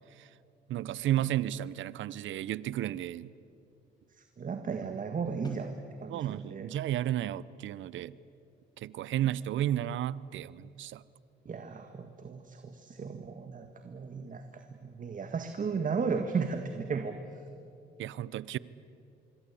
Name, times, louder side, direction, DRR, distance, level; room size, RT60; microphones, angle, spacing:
voice 1, 0.7-3.3 6.1-8.2 8.8-11.0 18.0-18.6, right 12 dB, 75° right, 19 dB, 0.7 m, -33 dB
voice 2, 4.2-5.7 6.0-6.7 11.5-17.2, right 5 dB, 40° right, 7 dB, 1.8 m, -35 dB
sound 1, 5.4-11.2, left 1 dB, 20° left, 4.0 m, -55 dB
26.0 x 23.0 x 8.5 m, 2.7 s
cardioid pair, 90°, 20 cm